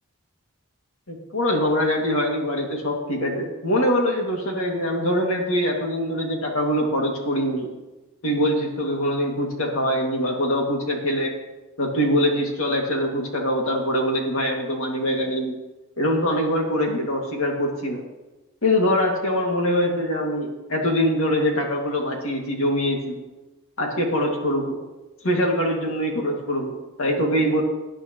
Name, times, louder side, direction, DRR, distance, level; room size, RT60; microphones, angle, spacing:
voice 1, 1.1-7.7 8.2-11.3 11.8-15.6 16.0-18.0 18.6-23.2 23.8-24.8 25.2-27.6, equal, 65° left, 1 dB, 2.3 m, -23 dB
18.0 x 10.0 x 3.1 m, 1.1 s
head